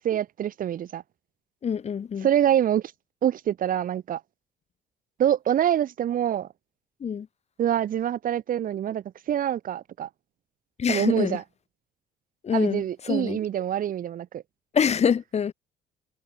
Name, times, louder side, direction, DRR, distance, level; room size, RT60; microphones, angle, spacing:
voice 1, 0.0-1.0 2.2-2.8 3.2-4.2 5.2-6.5 7.6-10.1 10.9-11.4 12.5-14.4, right 10 dB, 60° right, 2.6 m, -25 dB
voice 2, 1.6-2.3 7.0-7.3 10.8-11.4 12.4-13.4 14.7-15.5, left 7 dB, 40° left, 1.5 m, -25 dB
supercardioid pair, 80°, 16 cm